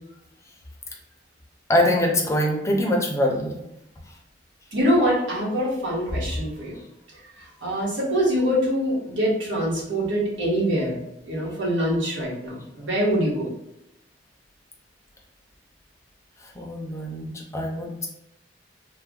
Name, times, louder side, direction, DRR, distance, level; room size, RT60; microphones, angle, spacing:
voice 1, 1.7-3.5 16.6-18.1, left 1 dB, 15° left, 0 dB, 0.5 m, -23 dB
voice 2, 4.7-6.8 7.4-11.0 11.2-13.5, equal, 85° right, -5 dB, 1.2 m, -24 dB
3.3 x 2.1 x 3.6 m, 0.83 s
head